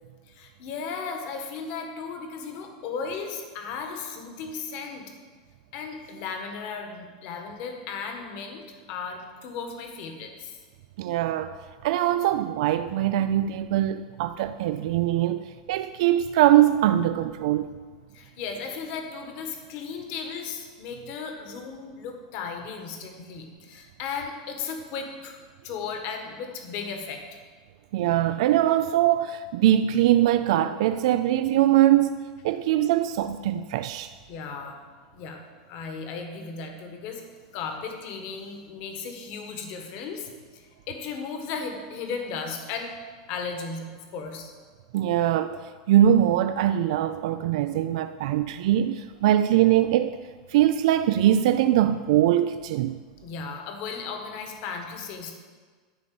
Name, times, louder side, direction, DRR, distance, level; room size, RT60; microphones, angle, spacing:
voice 1, 0.3-5.0 5.7-10.6 18.1-25.4 25.6-27.2 34.3-34.8 35.1-35.4 35.7-37.2 37.5-42.9 43.3-44.5 53.2-55.4, left 5 dB, 50° left, 1.4 m, -35 dB
voice 2, 11.0-11.6 11.8-15.4 15.7-17.7 27.9-32.2 32.4-34.1 44.9-45.6 45.9-50.2 50.5-53.0, right 12 dB, 65° right, 0.3 m, -22 dB
10.5 x 4.0 x 7.6 m
supercardioid pair, 150°, 4 cm